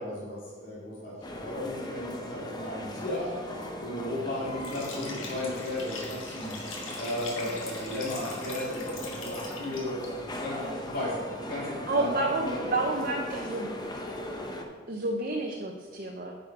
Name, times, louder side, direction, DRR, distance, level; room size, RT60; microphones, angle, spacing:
voice 1, 0.0-6.5 7.0-11.1 11.4-12.7, left 1 dB, 50° left, -8 dB, 2.5 m, -35 dB
sound 1, 1.2-14.6, left 1 dB, 20° left, 0.8 m, -39 dB
Liquid, 4.6-10.1, left 3 dB, 80° left, 1.8 m, -41 dB
voice 2, 11.9-13.7 14.9-16.4, right 2 dB, 45° right, 1 dB, 0.7 m, -30 dB
9.7 x 5.0 x 4.8 m, 1.5 s
head